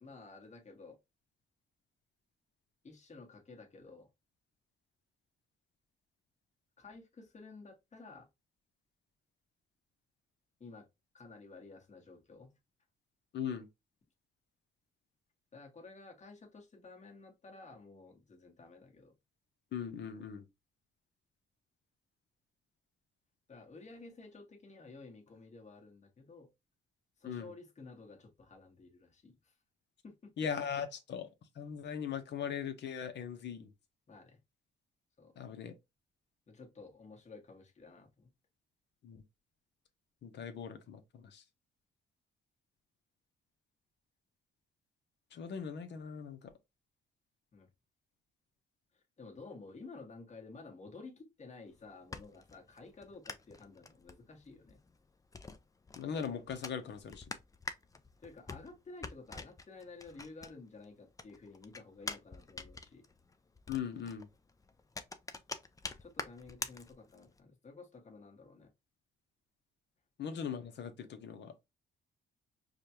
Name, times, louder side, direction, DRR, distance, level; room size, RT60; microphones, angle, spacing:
voice 1, 0.0-1.0 2.8-4.1 6.8-8.3 10.6-10.9 11.1-12.5 15.5-19.1 23.5-26.5 27.2-29.5 30.0-30.3 34.1-34.4 35.2-35.4 36.5-38.3 47.5-47.7 48.9-54.8 58.2-63.0 66.0-68.7, left 3 dB, 35° left, 1.5 m, -52 dB
voice 2, 13.3-13.7 19.7-20.5 27.2-27.5 30.4-31.3 31.5-33.7 35.4-35.7 39.0-39.2 40.2-41.4 45.3-46.5 56.0-57.2 63.7-64.3 70.2-71.5, left 7 dB, 60° left, 0.8 m, -39 dB
sound 1, 51.7-60.8 61.1-67.4, left 3 dB, 15° left, 0.5 m, -46 dB
4.9 x 2.3 x 2.9 m
cardioid pair, 90°, 20 cm